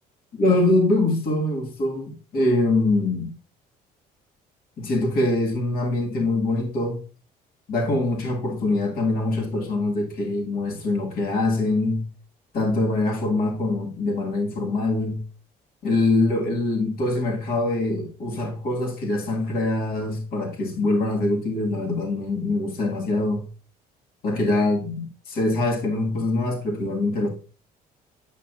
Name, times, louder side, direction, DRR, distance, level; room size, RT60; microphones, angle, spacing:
voice 1, 0.3-3.3 4.8-7.0 7.7-12.1 12.5-15.2 15.8-23.4 24.2-27.3, left 2 dB, 60° left, 1.7 m, -24 dB
8.2 x 5.9 x 2.4 m
cardioid pair, 110°, 17 cm